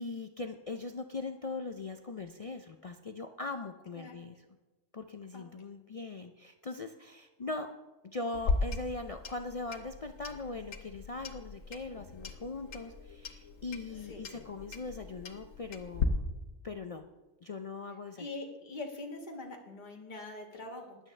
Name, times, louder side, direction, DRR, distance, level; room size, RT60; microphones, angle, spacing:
voice 1, 0.0-4.4 4.9-7.7 8.0-16.2 16.6-17.1 17.4-18.3, left 3 dB, 60° left, 6 dB, 0.3 m, -40 dB
Clock, 8.3-16.1, left 4 dB, 85° left, 1.4 m, -38 dB
voice 2, 18.2-21.0, left 2 dB, 40° left, 1 dB, 1.7 m, -43 dB
15.5 x 11.0 x 3.3 m, 1.1 s
omnidirectional pair, 1.3 m